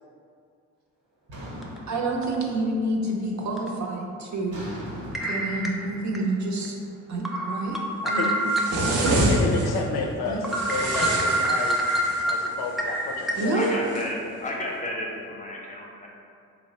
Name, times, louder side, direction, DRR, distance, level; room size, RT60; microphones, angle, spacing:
sound 1, 1.3-2.8 3.2-3.6 4.5-7.6, equal, 75° right, 1.0 m, -41 dB
sound 2, 1.6-1.8 2.2-2.4 3.6-3.7 5.1-6.2 6.6-6.7 7.2-9.1 9.6-9.7 10.1-10.2 10.4-13.3, right 1 dB, ahead, 0.3 m, -26 dB
voice 1, 1.9-4.6 5.2-6.8 7.1-7.8 8.0-8.4 8.7-9.2 10.2-10.4 13.4-13.7, right 2 dB, 50° right, -1 dB, 0.6 m, -28 dB
voice 2, 8.0-8.3 9.3-11.8 12.2-13.6, left 4 dB, 80° left, 1 dB, 0.5 m, -31 dB
sound 3, 8.5-9.8 10.5-12.3 13.4-14.1, right 1 dB, 90° right, 0.6 m, -27 dB
voice 3, 13.1-16.1, left 1 dB, 20° left, -2 dB, 0.7 m, -33 dB
3.1 x 2.0 x 4.0 m, 2.4 s
supercardioid pair, 55°, 37 cm